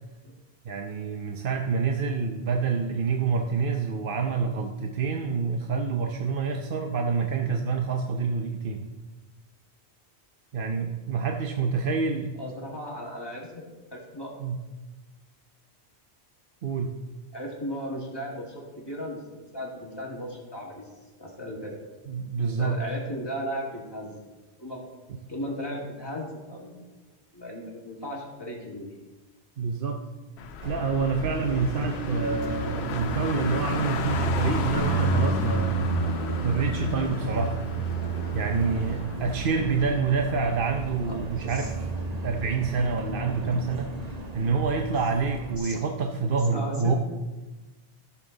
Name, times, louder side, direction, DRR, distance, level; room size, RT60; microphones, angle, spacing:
voice 1, 0.6-8.8 10.5-12.3 14.4-14.6 16.6-17.0 22.1-22.8 29.6-30.0 30.6-35.8 36.4-37.6 38.3-41.7 42.2-46.9, right 5 dB, 55° right, 3 dB, 0.8 m, -27 dB
voice 2, 12.4-14.4 17.3-19.2 19.5-20.9 21.2-21.7 22.4-24.1 24.6-24.9 25.3-26.8 27.3-28.9 41.4-41.7 43.4-43.6 45.6-45.8 46.5-47.0, equal, 20° left, -2 dB, 2.1 m, -36 dB
Car, 30.4-39.9, left 7 dB, 70° left, 0.9 m, -36 dB
Car passing by, 30.6-45.6, right 3 dB, 35° right, 1.3 m, -31 dB
14.5 x 7.1 x 3.9 m, 1.2 s
omnidirectional pair, 1.1 m